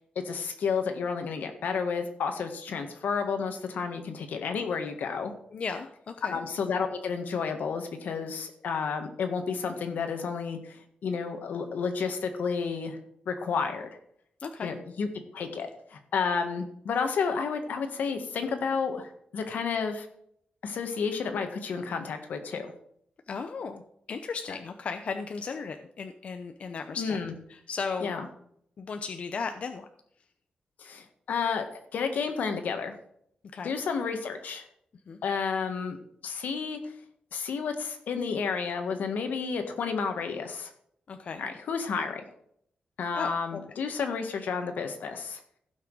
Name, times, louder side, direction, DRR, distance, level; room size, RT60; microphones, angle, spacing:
voice 1, 0.3-5.3 6.3-13.0 13.3-13.9 14.6-15.1 15.3-20.1 20.6-22.7 26.9-27.3 28.0-28.3 30.8-31.6 31.9-32.9 33.6-34.6 35.2-36.0 36.2-36.8 37.3-40.7 41.4-42.2 43.0-45.4, left 5 dB, 80° left, 6 dB, 1.7 m, -31 dB
voice 2, 5.5-6.4 14.4-14.7 23.3-23.8 24.1-27.2 27.5-28.1 28.8-29.9 33.5-33.7 35.1-35.2 41.1-41.4 43.1-43.6, left 5 dB, 45° left, 7 dB, 0.7 m, -36 dB
16.0 x 6.0 x 4.8 m, 0.69 s
wide cardioid pair, 180°, 3 cm